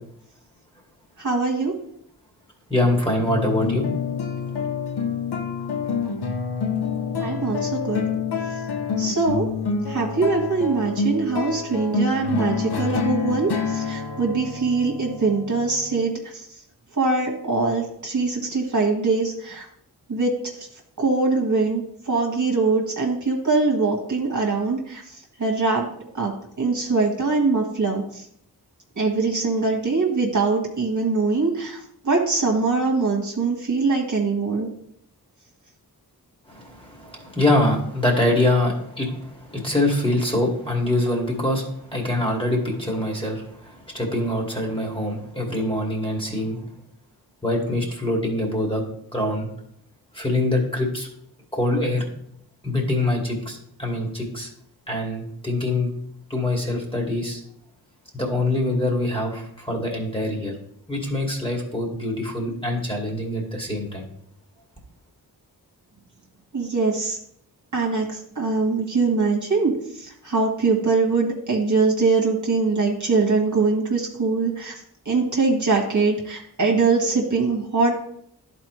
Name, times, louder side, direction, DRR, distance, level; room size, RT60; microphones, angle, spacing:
voice 1, 1.2-1.7 7.2-8.0 9.0-9.5 9.9-16.5 16.9-19.7 20.1-20.7 21.0-25.9 26.1-28.3 29.0-34.7 66.5-67.2 67.7-74.8 75.1-77.9, right 3 dB, 50° right, -1 dB, 1.7 m, -23 dB
voice 2, 2.7-3.9 36.5-46.6 47.4-48.8 49.1-49.5 50.1-51.1 51.5-52.1 52.6-54.5 54.9-55.9 56.3-57.4 58.1-60.5 60.9-64.1, left 1 dB, 15° left, -1 dB, 2.3 m, -24 dB
sound 1, 3.3-16.0, left 5 dB, 75° left, 0.9 m, -27 dB
11.0 x 4.3 x 3.1 m, 0.69 s
cardioid pair, 45°, 39 cm